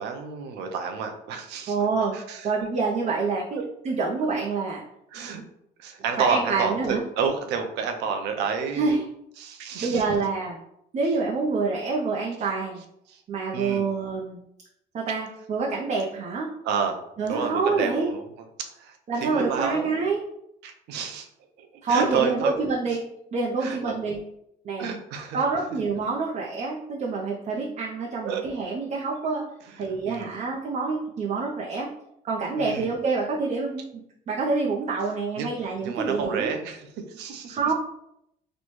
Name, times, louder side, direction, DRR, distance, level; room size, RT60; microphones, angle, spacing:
voice 1, 0.0-1.8 2.1-2.5 3.5-3.6 5.1-5.4 5.8-9.0 9.4-10.0 13.1-13.2 13.5-13.9 16.6-17.0 17.3-18.3 18.6-19.9 20.6-21.3 21.6-22.5 23.6-24.0 24.8-25.4 28.2-28.4 30.0-30.3 32.6-32.9 35.4-35.5 35.8-37.6, right 6 dB, 85° right, 5 dB, 0.6 m, -29 dB
voice 2, 1.7-2.2 2.4-4.8 6.2-7.0 8.7-9.0 9.8-10.6 10.9-12.8 13.3-14.4 14.9-16.5 17.2-18.1 19.1-20.2 21.8-23.0 23.3-24.2 24.6-24.9 25.3-29.4 29.8-31.9 32.2-36.5 37.5-37.7, right 4 dB, 45° right, -2 dB, 0.6 m, -27 dB
4.2 x 2.2 x 3.0 m, 0.77 s
cardioid pair, 110°, 17 cm